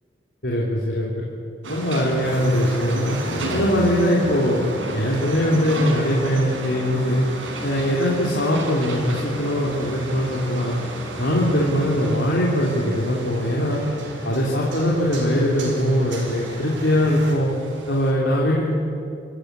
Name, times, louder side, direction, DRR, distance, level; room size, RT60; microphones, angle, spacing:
voice 1, 0.4-1.3 1.7-3.2 3.5-4.6 4.9-7.2 7.6-10.8 11.2-13.8 14.2-17.5 17.9-18.7, equal, 65° left, -4 dB, 3.5 m, -21 dB
sound 1, 1.6-18.1, right 2 dB, 80° right, 4.8 m, -35 dB
sound 2, 2.2-17.3, right 1 dB, 65° right, 4.7 m, -35 dB
26.5 x 15.5 x 9.9 m, 2.6 s
head